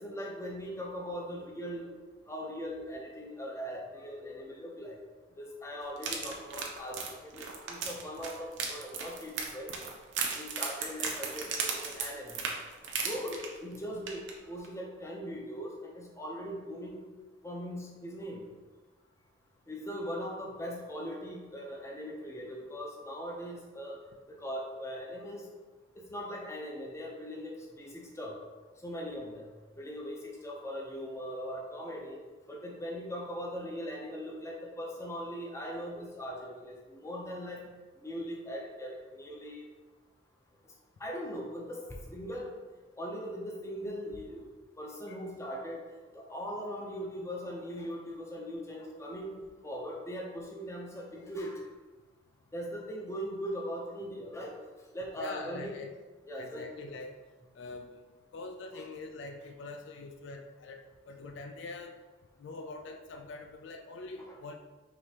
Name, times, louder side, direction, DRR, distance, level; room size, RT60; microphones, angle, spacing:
voice 1, 0.0-1.9 2.3-5.0 5.4-9.7 10.3-12.4 13.0-17.1 17.4-18.4 19.7-24.0 24.3-25.5 26.0-28.4 28.8-29.5 29.8-32.2 32.5-37.7 38.0-39.7 41.0-41.8 42.1-42.5 43.0-44.5 44.8-45.8 46.1-49.3 49.6-51.6 52.5-54.5 54.9-55.8 56.3-56.7 58.7-58.8 64.2-64.4, equal, 15° left, -1 dB, 0.5 m, -40 dB
sound 1, 6.0-13.8 14.1-14.3 14.6-14.7, right 5 dB, 60° right, 0.6 m, -36 dB
voice 2, 55.1-55.9 56.4-57.2 57.5-58.0 58.3-62.0 62.4-64.6, left 3 dB, 60° left, 4 dB, 0.3 m, -44 dB
4.9 x 3.2 x 2.8 m, 1.3 s
head